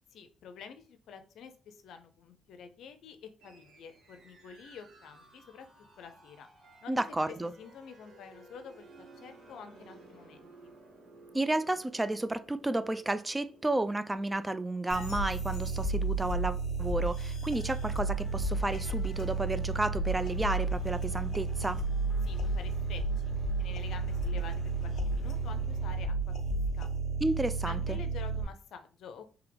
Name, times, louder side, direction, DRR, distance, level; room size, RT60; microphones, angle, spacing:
voice 1, 0.1-5.7 6.0-6.5 6.8-10.7 22.2-26.9 27.7-29.3, left 6 dB, 75° left, 0.6 m, -49 dB
sound 1, 3.4-15.7, right 2 dB, 80° right, 2.0 m, -56 dB
voice 2, 6.9-7.5 11.3-21.8 27.2-28.0, right 2 dB, 15° right, 0.3 m, -32 dB
sound 2, 14.9-28.4, right 3 dB, 60° left, 1.1 m, -32 dB
sound 3, 17.8-26.1, right 1 dB, 25° left, 0.8 m, -47 dB
3.5 x 3.3 x 3.4 m
cardioid pair, 90°, 0 cm